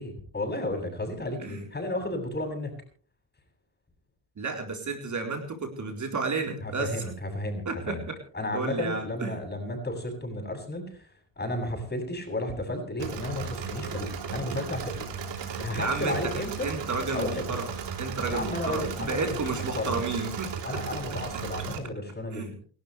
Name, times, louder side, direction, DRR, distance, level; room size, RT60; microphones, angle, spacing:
voice 1, 0.0-2.7 6.6-8.0 8.3-10.9 11.4-15.0 15.2-16.7 17.1-17.6 18.3-19.5 19.7-20.0 20.6-22.6, left 1 dB, 20° left, 3 dB, 7.8 m, -33 dB
voice 2, 4.4-7.1 7.7-8.2 8.5-9.4 15.7-16.3 16.6-17.7 18.0-20.5 22.3-22.5, right 4 dB, 35° right, 3 dB, 4.1 m, -32 dB
Engine / Mechanisms, 13.0-21.8, right 6 dB, 60° right, 3.8 m, -35 dB
28.5 x 12.5 x 3.4 m, 0.43 s
cardioid pair, 95°, 47 cm